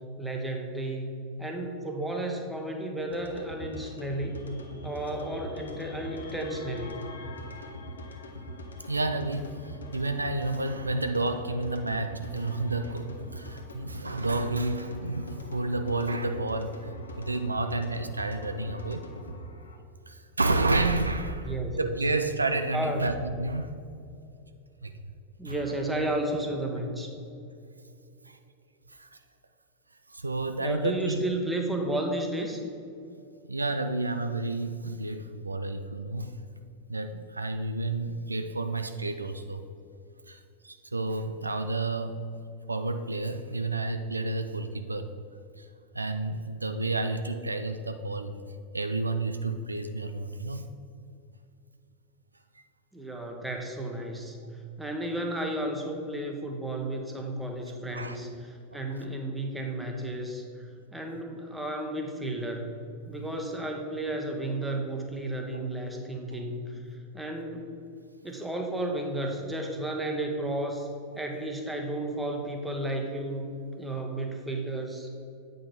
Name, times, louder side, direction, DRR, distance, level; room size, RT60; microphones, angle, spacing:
voice 1, 0.2-1.1 1.4-4.5 4.8-7.1 21.4-21.9 22.7-23.0 25.4-27.1 30.6-32.6 52.9-54.4 54.8-66.8 67.1-67.7 68.2-70.9 71.1-73.5 73.8-75.1, right 1 dB, 5° right, 1 dB, 1.1 m, -33 dB
sound 1, 3.1-19.8, left 1 dB, 70° left, 0.9 m, -42 dB
voice 2, 8.9-16.8 17.2-19.0 20.1-23.7 24.8-24.9 25.4-25.5 28.3-28.4 29.0-29.1 30.1-31.2 33.5-36.3 36.9-39.6 40.3-42.2 42.7-45.1 45.6-45.7 45.9-48.3 48.7-50.7 57.9-58.2 58.7-58.8, right 2 dB, 80° right, 8 dB, 0.4 m, -30 dB
8.6 x 5.3 x 4.4 m, 2.5 s
figure-of-eight pair, 90°, 0 cm